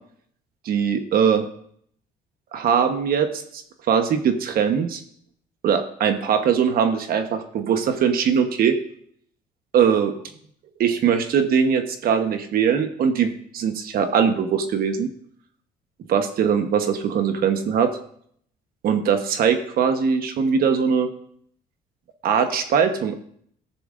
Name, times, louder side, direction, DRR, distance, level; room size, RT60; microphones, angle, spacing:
voice 1, 0.6-1.5 2.5-3.3 3.5-3.6 3.9-5.0 5.6-8.7 9.7-10.1 10.8-15.1 16.1-17.9 18.8-21.1 22.2-23.2, right 7 dB, 60° right, 7 dB, 1.1 m, -21 dB
14.0 x 11.0 x 2.6 m, 0.63 s
cardioid pair, 110°, 17 cm